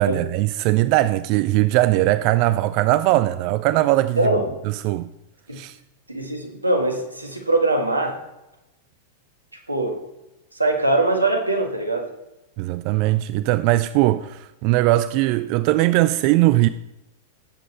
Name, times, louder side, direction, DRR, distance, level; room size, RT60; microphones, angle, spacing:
voice 1, 0.0-4.2 4.7-5.1 5.5-5.8 12.6-16.7, right 16 dB, 45° right, 0.5 m, -20 dB
voice 2, 4.2-4.5 5.5-5.6 6.1-8.2 9.7-10.0 10.5-12.1, right 2 dB, 90° right, 1.9 m, -22 dB
17.5 x 7.6 x 4.4 m
figure-of-eight pair, 95°, 0 cm